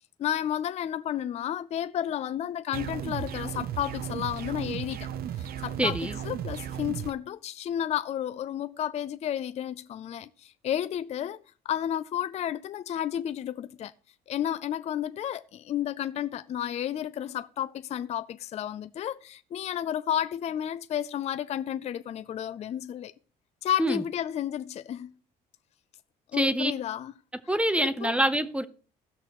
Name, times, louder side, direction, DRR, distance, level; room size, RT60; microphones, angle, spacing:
voice 1, 0.2-5.1 5.4-6.0 6.2-13.9 14.3-23.1 23.6-25.2 26.3-27.1 27.8-28.1, left 10 dB, 40° left, 0.4 m, -32 dB
sound 1, 2.7-7.1, right 10 dB, 65° right, 0.6 m, -35 dB
voice 2, 5.8-6.2 23.8-24.0 26.3-26.7 27.5-28.7, right 1 dB, 5° right, 0.6 m, -25 dB
16.5 x 6.2 x 3.0 m
cardioid pair, 110°, 17 cm